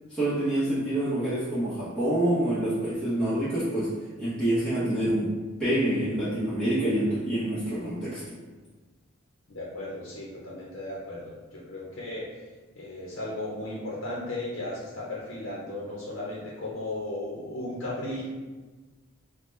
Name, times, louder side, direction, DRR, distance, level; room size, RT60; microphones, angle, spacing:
voice 1, 0.1-5.3 5.6-8.2, right 1 dB, 5° left, -12 dB, 0.9 m, -27 dB
voice 2, 9.5-12.4 12.7-18.3, left 1 dB, 70° left, -6 dB, 0.7 m, -35 dB
3.8 x 2.2 x 3.1 m, 1.3 s
head